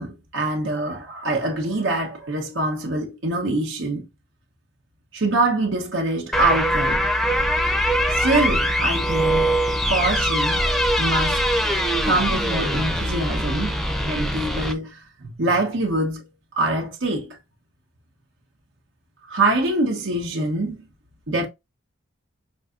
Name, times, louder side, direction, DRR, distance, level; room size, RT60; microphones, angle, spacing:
voice 1, 0.0-4.1 5.1-7.0 8.1-9.5 9.9-10.7 11.0-11.4 12.0-13.8 14.0-16.3 16.6-17.4 19.3-20.9 21.3-21.5, right 2 dB, 85° right, 1.0 m, -24 dB
sound 1, 6.3-14.7, equal, ahead, 0.5 m, -22 dB
5.4 x 2.7 x 2.4 m
head